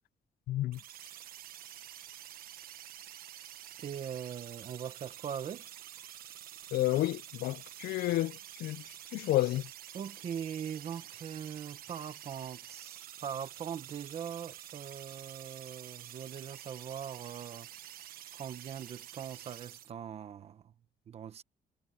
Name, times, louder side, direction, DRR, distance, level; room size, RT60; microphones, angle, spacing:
voice 1, 0.5-0.8 6.7-8.8 9.1-9.7, left 16 dB, 85° left, 0.5 m, -31 dB
sound 1, 0.7-19.9, right 12 dB, 70° right, 1.1 m, -49 dB
voice 2, 3.8-5.7 9.9-17.7 18.3-20.7 21.1-21.4, right 8 dB, 40° right, 1.2 m, -41 dB
cardioid pair, 175°, 16 cm